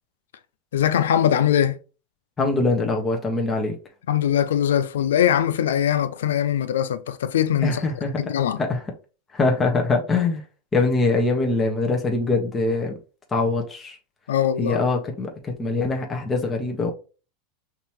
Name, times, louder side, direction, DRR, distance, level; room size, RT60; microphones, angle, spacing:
voice 1, 0.7-1.8 4.1-7.8 8.2-8.6 14.3-14.8, left 10 dB, 90° left, 0.5 m, -21 dB
voice 2, 2.4-3.8 7.6-8.3 8.6-8.8 9.3-10.4 10.7-13.0 13.3-14.0 14.6-16.9, left 3 dB, 20° left, 1.2 m, -23 dB
5.3 x 3.0 x 3.0 m
supercardioid pair, 120°, 0 cm